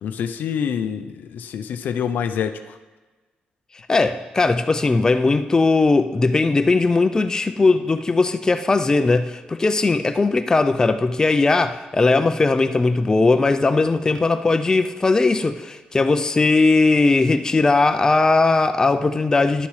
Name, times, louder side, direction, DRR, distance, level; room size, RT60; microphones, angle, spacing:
voice 1, 0.0-2.8, left 8 dB, 75° left, 9 dB, 0.5 m, -26 dB
voice 2, 3.9-19.7, left 3 dB, 20° left, 8 dB, 0.4 m, -18 dB
11.0 x 6.9 x 3.2 m, 1.3 s
cardioid pair, 110°, 3 cm